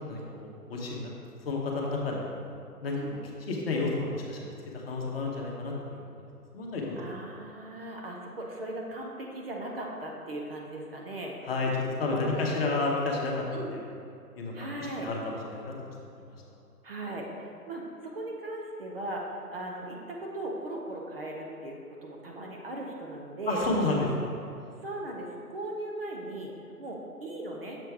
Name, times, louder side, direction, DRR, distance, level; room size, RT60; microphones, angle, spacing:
voice 1, 0.1-1.1 1.4-2.5 2.8-3.0 3.4-6.0 6.5-7.0 11.5-11.7 12.0-13.4 14.4-14.7 15.0-15.7 23.5-24.4, left 3 dB, 40° left, -2 dB, 1.1 m, -31 dB
voice 2, 7.0-11.5 12.1-12.6 13.5-13.7 14.5-15.1 16.8-23.6 24.8-26.5 26.8-27.8, right 1 dB, 40° right, -1 dB, 0.8 m, -38 dB
7.0 x 4.4 x 4.7 m, 2.4 s
figure-of-eight pair, 145°, 47 cm